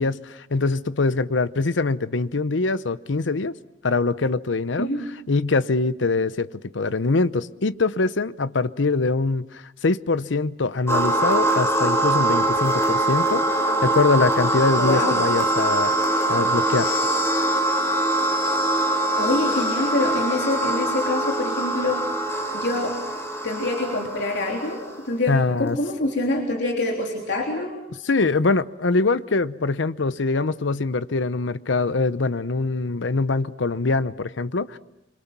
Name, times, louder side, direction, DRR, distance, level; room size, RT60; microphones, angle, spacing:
voice 1, 0.0-3.5 3.8-4.9 5.3-15.9 16.3-16.9 25.3-25.8 28.0-34.8, left 3 dB, 80° left, 0.8 m, -23 dB
sound 1, 10.9-25.0, right 1 dB, 15° left, 4.2 m, -23 dB
voice 2, 14.8-15.2 18.9-22.0 22.5-22.9 23.4-27.8, left 2 dB, 65° left, 3.6 m, -26 dB
27.0 x 25.5 x 6.0 m
head